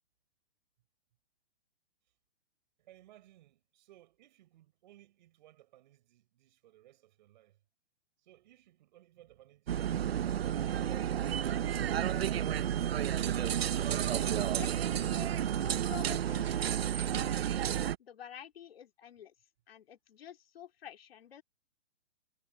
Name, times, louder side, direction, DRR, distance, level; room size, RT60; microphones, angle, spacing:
voice 1, 2.8-7.6 8.2-11.2 11.5-12.8, right 14 dB, 45° right, 6.8 m, -61 dB
sound 1, 9.7-18.0, right 10 dB, 70° right, 1.0 m, -31 dB
voice 2, 14.2-15.3 15.6-17.4 18.0-19.3 19.7-21.4, left 10 dB, 65° left, 2.9 m, -49 dB
hypercardioid pair, 155°, 31 cm